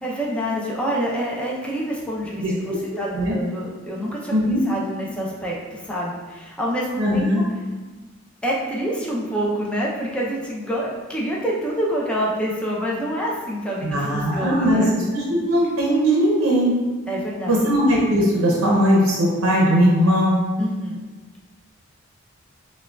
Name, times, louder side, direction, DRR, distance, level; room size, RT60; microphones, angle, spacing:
voice 1, 0.0-7.4 8.4-14.9 17.1-17.6 20.6-21.0, equal, 5° left, -4 dB, 0.5 m, -27 dB
voice 2, 2.4-2.8 3.1-3.3 4.3-4.6 7.0-7.4 13.8-14.9 15.1-16.8 17.5-20.4, equal, 80° right, -4 dB, 0.7 m, -19 dB
5.9 x 2.3 x 2.3 m, 1.3 s
head